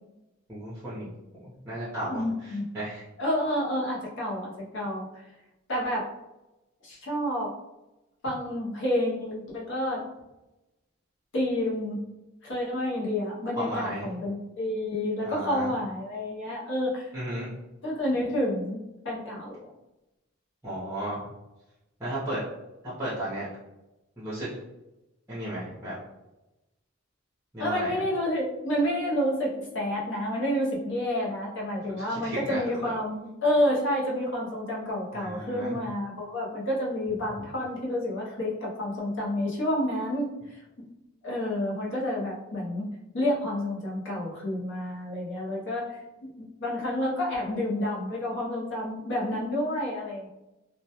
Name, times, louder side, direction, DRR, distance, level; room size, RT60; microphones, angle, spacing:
voice 1, 0.5-1.1 1.4-3.0 13.6-14.1 15.2-15.7 17.1-17.5 20.6-21.2 22.0-22.4 22.8-23.5 24.2-24.6 25.3-25.9 27.5-28.0 32.1-32.9 35.1-35.8, right 1 dB, 10° right, -10 dB, 0.6 m, -34 dB
voice 2, 2.1-2.6 3.2-5.2 5.7-6.1 6.8-7.5 8.2-10.0 11.3-12.0 12.4-17.1 17.8-19.7 27.6-40.6 41.2-50.3, left 1 dB, 55° left, -4 dB, 0.6 m, -29 dB
2.1 x 2.1 x 2.8 m, 0.97 s
head